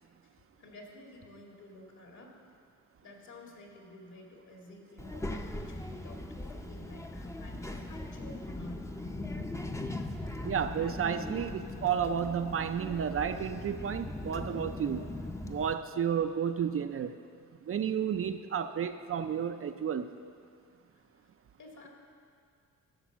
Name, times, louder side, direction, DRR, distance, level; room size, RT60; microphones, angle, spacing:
voice 1, 0.6-2.4 3.0-8.8 21.6-21.9, left 1 dB, 60° left, 0 dB, 2.3 m, -51 dB
Child speech kid speaking, 5.0-15.7, left 1 dB, 10° left, 0.6 m, -40 dB
voice 2, 10.4-15.1 15.5-17.2 17.7-20.1, right 8 dB, 45° right, 9 dB, 0.5 m, -32 dB
12.5 x 6.0 x 7.2 m, 2.3 s
cardioid pair, 100°, 32 cm